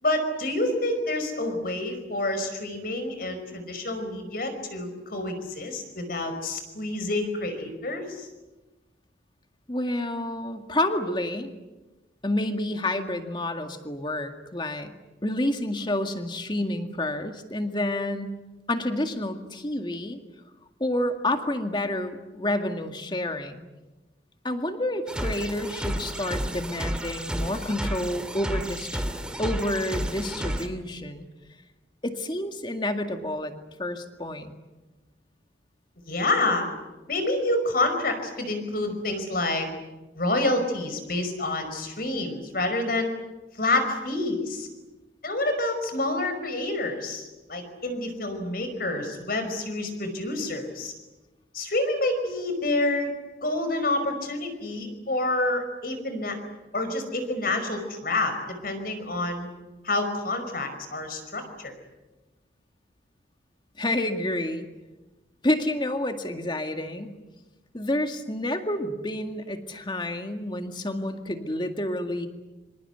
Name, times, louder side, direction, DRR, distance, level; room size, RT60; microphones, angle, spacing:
voice 1, 0.0-8.3 36.1-36.7 37.1-39.7 40.2-43.1 43.6-44.7 45.2-50.9 51.5-53.1 53.4-56.4 56.7-59.5 59.8-61.7, left 2 dB, 50° left, 7 dB, 5.3 m, -28 dB
voice 2, 9.7-11.5 12.2-14.9 15.2-18.4 18.7-20.2 20.8-23.6 24.4-29.1 29.4-31.3 32.0-33.5 33.8-34.5 63.8-64.7 65.4-67.2 67.7-72.3, left 1 dB, 25° left, 6 dB, 2.0 m, -29 dB
sound 1, 25.1-30.7, equal, 5° right, 2.2 m, -31 dB
26.0 x 26.0 x 8.1 m, 1.1 s
head